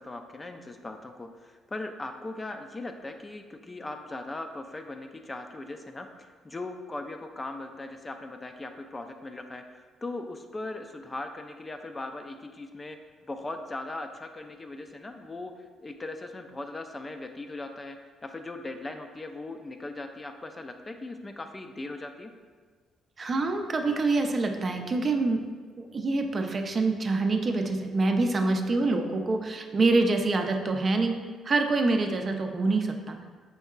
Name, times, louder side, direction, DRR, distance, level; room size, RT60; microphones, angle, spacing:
voice 1, 0.0-9.6 10.0-13.0 13.2-18.0 18.2-22.3, left 2 dB, 25° left, 6 dB, 0.4 m, -39 dB
voice 2, 23.2-25.4 25.8-31.2 31.4-33.3, right 3 dB, 45° right, 4 dB, 0.5 m, -26 dB
5.3 x 3.5 x 2.3 m, 1.5 s
supercardioid pair, 65°, 0 cm